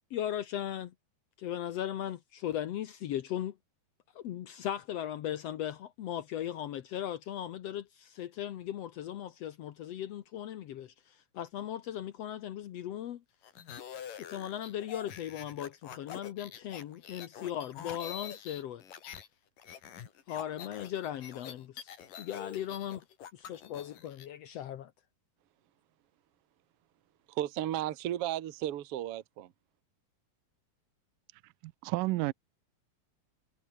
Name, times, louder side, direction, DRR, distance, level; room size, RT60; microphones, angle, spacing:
voice 1, 0.1-0.9 1.4-3.6 4.1-13.2 14.2-18.8 20.3-21.9 22.2-23.0 23.3-24.9, left 11 dB, 90° left, 1.4 m, -38 dB
sound 1, 13.4-19.3 19.6-24.3, left 8 dB, 60° left, 3.9 m, -46 dB
voice 2, 27.3-29.5, right 12 dB, 60° right, 1.6 m, -34 dB
voice 3, 31.6-32.3, right 21 dB, 85° right, 1.9 m, -31 dB
omnidirectional pair, 4.5 m